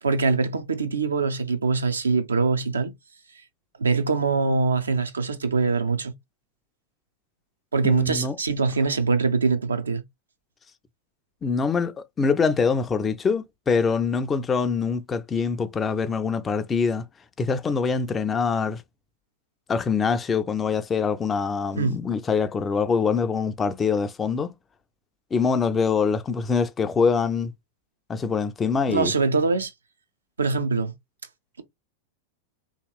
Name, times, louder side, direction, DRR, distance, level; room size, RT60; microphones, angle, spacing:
voice 1, 0.0-2.9 3.8-6.1 7.7-10.0 21.8-22.0 28.9-29.7 30.4-30.9, right 4 dB, 75° right, 0.5 m, -23 dB
voice 2, 7.8-8.4 11.4-17.0 17.4-18.8 19.7-24.5 25.3-27.5 28.1-29.1, left 5 dB, 20° left, 0.3 m, -24 dB
2.8 x 2.8 x 2.2 m
figure-of-eight pair, 90°, 0 cm